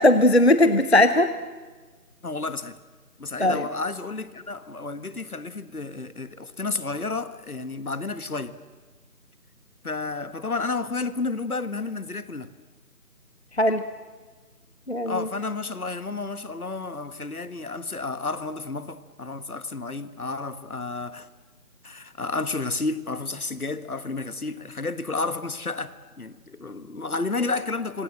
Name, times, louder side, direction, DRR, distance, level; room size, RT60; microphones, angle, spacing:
voice 1, 0.0-1.3 3.4-3.7 13.5-13.8 14.9-15.3, left 1 dB, 45° left, 0.8 m, -18 dB
voice 2, 2.2-2.8 3.2-8.5 9.8-12.5 15.0-21.3 21.8-28.0, left 3 dB, 65° left, 1.5 m, -31 dB
26.0 x 24.0 x 7.7 m
figure-of-eight pair, 175°, 47 cm